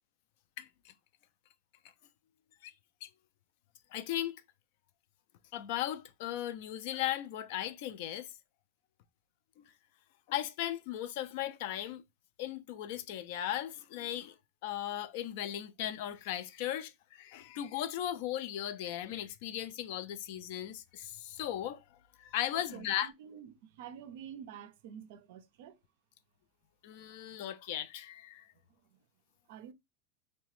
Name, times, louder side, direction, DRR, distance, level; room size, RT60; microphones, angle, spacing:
voice 1, 0.6-0.9 2.6-2.7 3.0-3.1 3.9-4.4 5.5-8.3 9.6-9.7 10.3-12.0 12.4-14.4 14.6-21.8 22.2-23.1 26.8-28.5, left 12 dB, 60° left, 0.3 m, -37 dB
voice 2, 22.5-25.8 28.9-29.0 29.5-29.7, right 9 dB, 65° right, 0.4 m, -48 dB
2.8 x 2.1 x 3.0 m
supercardioid pair, 150°, 0 cm